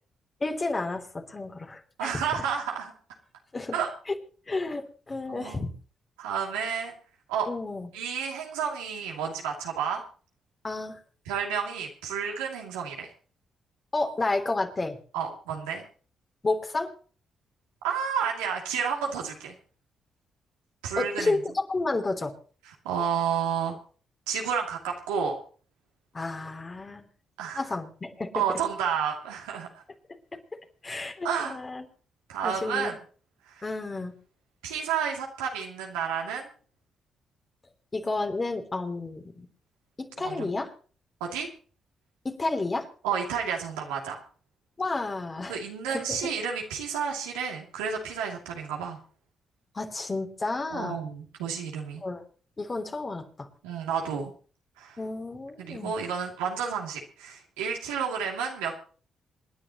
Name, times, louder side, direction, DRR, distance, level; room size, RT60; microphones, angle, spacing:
voice 1, 0.4-2.3 3.5-3.7 4.1-4.2 4.5-5.7 7.5-7.9 10.6-11.0 13.9-15.0 16.4-16.9 21.0-22.3 26.1-27.1 27.5-28.6 30.8-31.8 32.4-32.9 33.6-34.1 37.9-39.5 40.0-40.7 42.2-42.9 44.8-45.6 45.9-46.2 49.7-51.0 52.0-52.2 52.6-53.5 55.0-55.9, left 3 dB, 35° left, 4 dB, 3.1 m, -31 dB
voice 2, 2.0-2.9 3.7-3.9 5.3-5.6 6.2-6.9 7.3-7.5 7.9-10.0 11.3-13.1 15.1-15.8 17.8-19.5 20.8-21.4 22.6-23.8 24.3-25.4 27.4-27.6 28.3-29.8 31.2-31.6 32.3-33.0 33.5-33.6 34.6-36.5 40.2-40.5 41.2-41.5 43.0-44.2 45.5-49.0 50.7-52.0 53.6-54.3 54.8-55.0 55.6-58.8, right 7 dB, 85° right, 0 dB, 2.8 m, -31 dB
27.5 x 10.5 x 3.1 m, 0.40 s
hypercardioid pair, 45°, 0 cm